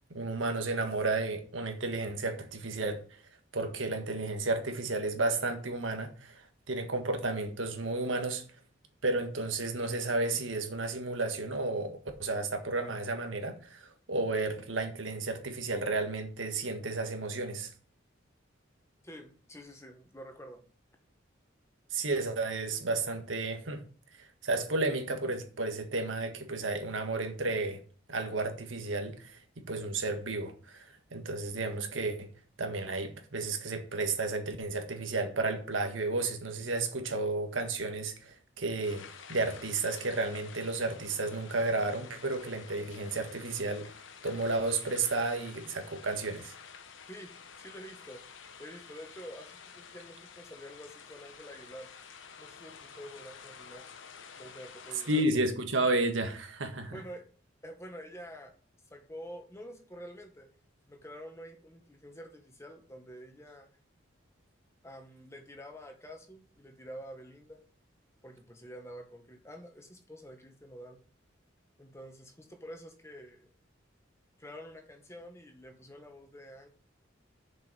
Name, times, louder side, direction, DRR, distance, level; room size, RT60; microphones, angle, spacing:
voice 1, 0.1-3.2 3.5-8.4 9.0-17.7 21.9-23.8 24.1-27.8 28.1-32.3 32.6-39.0 39.3-43.9 44.2-46.5 55.1-57.0, right 2 dB, 80° right, 1.6 m, -32 dB
voice 2, 19.0-20.6 47.1-48.2 48.6-51.9 52.4-53.8 54.4-55.2 56.9-57.3 57.6-58.5 58.9-60.5 60.9-63.7 64.8-67.6 68.2-71.0 71.8-73.5 74.4-76.7, equal, 15° left, 1.5 m, -48 dB
sound 1, 38.8-55.3, left 6 dB, 80° left, 1.1 m, -50 dB
7.0 x 5.6 x 7.2 m
head